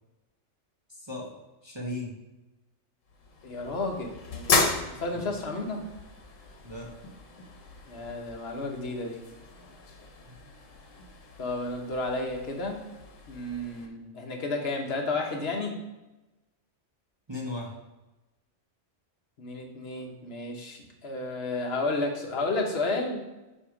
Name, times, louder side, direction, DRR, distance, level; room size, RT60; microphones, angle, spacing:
voice 1, 0.9-1.3 1.6-2.1 5.1-5.3 6.6-6.9 10.2-10.5 14.0-14.2 17.3-17.7, left 2 dB, 25° right, -2 dB, 0.8 m, -37 dB
sound 1, 3.1-13.9, left 4 dB, 80° left, 1.2 m, -35 dB
voice 2, 3.4-5.8 7.9-9.2 11.4-12.8 13.3-15.8 19.4-23.2, left 2 dB, 55° left, 2 dB, 1.1 m, -32 dB
7.6 x 2.9 x 4.8 m, 1.0 s
omnidirectional pair, 1.3 m